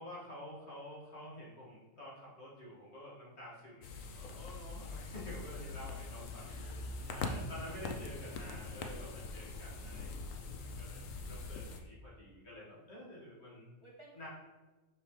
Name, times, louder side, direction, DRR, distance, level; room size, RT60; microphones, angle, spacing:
voice 1, 0.0-6.5 7.1-13.7 14.2-14.3, equal, 55° left, -7 dB, 2.5 m, -49 dB
sound 1, 3.8-11.8, left 3 dB, 90° left, 1.1 m, -43 dB
voice 2, 6.4-7.1 8.1-8.8 13.8-14.3, right 1 dB, 30° right, -2 dB, 0.7 m, -59 dB
6.4 x 6.3 x 3.3 m, 1.2 s
omnidirectional pair, 1.3 m